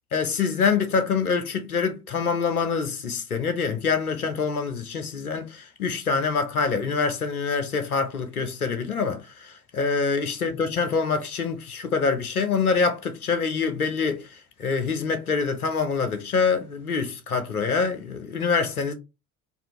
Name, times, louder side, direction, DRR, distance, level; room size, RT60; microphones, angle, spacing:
voice 1, 0.1-18.9, left 5 dB, 90° left, 0.6 m, -25 dB
3.8 x 2.5 x 2.7 m
figure-of-eight pair, 50°, 43 cm